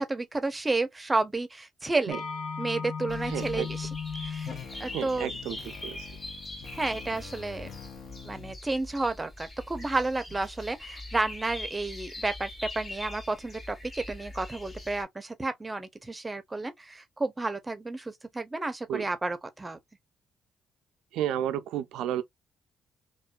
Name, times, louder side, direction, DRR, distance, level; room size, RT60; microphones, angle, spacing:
voice 1, 0.0-2.2 2.6-3.9 4.2-4.5 4.8-5.3 6.7-7.7 8.2-19.8, right 2 dB, 20° right, 0.6 m, -31 dB
sound 1, 2.1-8.5, left 6 dB, 75° left, 0.7 m, -39 dB
sound 2, 3.1-15.0, left 1 dB, 30° left, 1.2 m, -43 dB
voice 2, 3.3-3.7 4.9-6.0 18.9-19.0 21.1-22.2, right 10 dB, 90° right, 0.4 m, -32 dB
2.4 x 2.2 x 2.2 m
cardioid pair, 90°, 0 cm